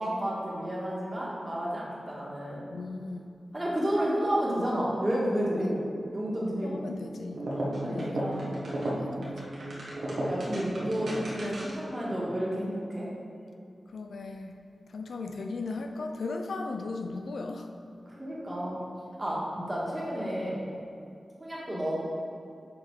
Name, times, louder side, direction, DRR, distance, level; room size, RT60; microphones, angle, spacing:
voice 1, 0.0-2.6 3.5-5.8 6.1-6.9 7.5-8.4 8.9-9.2 10.2-13.1 18.0-18.8 19.2-20.6 21.4-22.0, equal, 20° right, -6 dB, 1.8 m, -31 dB
voice 2, 2.7-3.3 5.5-5.7 6.6-7.5 7.9-8.5 8.9-9.3 13.9-14.6 14.9-17.7 20.6-20.8, left 3 dB, 90° left, 4 dB, 0.5 m, -37 dB
sound 1, 7.3-11.9, right 1 dB, 70° right, 1.5 m, -34 dB
7.0 x 5.0 x 4.7 m, 2.5 s
wide cardioid pair, 130°, 0 cm